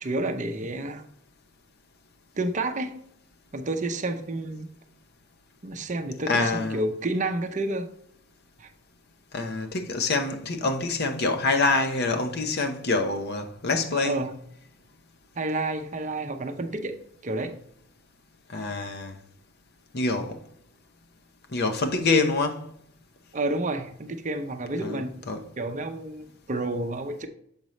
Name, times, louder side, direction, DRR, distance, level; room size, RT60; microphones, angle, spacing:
voice 1, 0.0-1.0 2.4-2.9 3.5-4.7 5.6-7.9 8.6-8.7 14.0-14.3 15.4-17.0 17.2-17.5 23.3-25.1 25.6-27.3, right 2 dB, 40° right, 0.6 m, -30 dB
voice 2, 6.3-6.8 9.3-14.2 18.5-19.2 19.9-20.4 21.5-22.7 24.8-25.4, left 3 dB, 55° left, 0.8 m, -26 dB
7.3 x 5.2 x 3.1 m
head